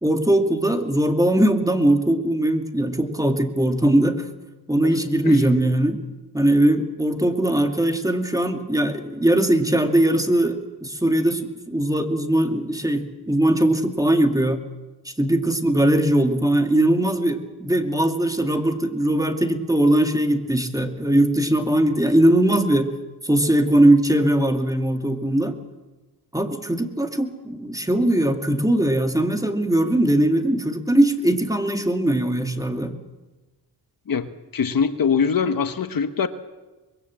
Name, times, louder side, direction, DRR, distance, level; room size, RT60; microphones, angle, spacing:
voice 1, 0.0-4.3 4.7-6.0 6.3-14.6 15.0-23.0 23.2-25.6 26.3-32.9, right 1 dB, 10° right, 5 dB, 2.4 m, -20 dB
voice 2, 34.1-36.3, left 6 dB, 55° left, 9 dB, 1.2 m, -23 dB
24.5 x 21.5 x 7.6 m, 1.2 s
cardioid pair, 85°, 41 cm